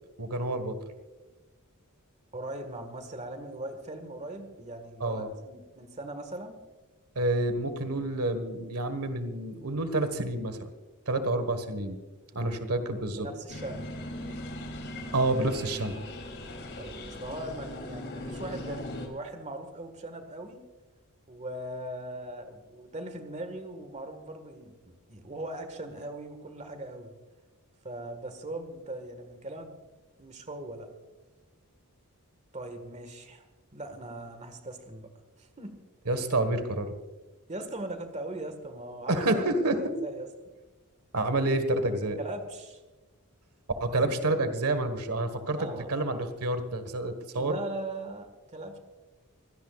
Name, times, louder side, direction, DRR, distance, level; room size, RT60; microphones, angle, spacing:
voice 1, 0.2-0.7 5.0-5.3 7.1-10.7 11.1-12.0 12.3-13.3 15.1-16.0 36.1-36.9 39.1-39.8 41.1-42.2 43.8-47.5, right 2 dB, 80° right, 9 dB, 1.6 m, -28 dB
voice 2, 2.3-6.6 12.3-12.6 13.2-13.9 14.2-14.4 16.8-20.6 21.3-27.2 27.8-29.8 30.2-30.9 32.5-33.4 33.7-35.1 35.4-35.8 37.5-39.4 40.0-40.3 42.2-42.8 45.6-45.9 47.3-48.8, right 1 dB, 30° right, 7 dB, 1.7 m, -40 dB
sound 1, 13.5-19.1, left 1 dB, 50° left, 3.2 m, -39 dB
25.0 x 17.5 x 2.5 m, 1.2 s
head